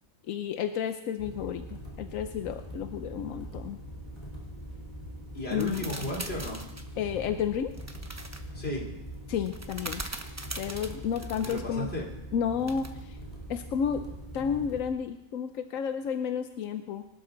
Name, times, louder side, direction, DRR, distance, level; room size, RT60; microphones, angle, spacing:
voice 1, 0.3-3.8 5.5-5.9 7.0-7.7 9.3-10.0 10.6-11.9 12.3-13.2 13.5-14.0 14.3-17.0, left 7 dB, 90° left, 8 dB, 1.1 m, -31 dB
sound 1, 1.2-14.9, equal, 35° left, 4.0 m, -42 dB
voice 2, 5.3-6.7 8.5-8.9 11.4-12.1, left 1 dB, 50° left, -3 dB, 3.6 m, -34 dB
sound 2, 5.5-6.9 7.8-8.4 9.4-11.6 12.7-13.0, right 2 dB, 15° right, 0.9 m, -41 dB
24.5 x 12.0 x 3.9 m, 0.94 s
omnidirectional pair, 1.3 m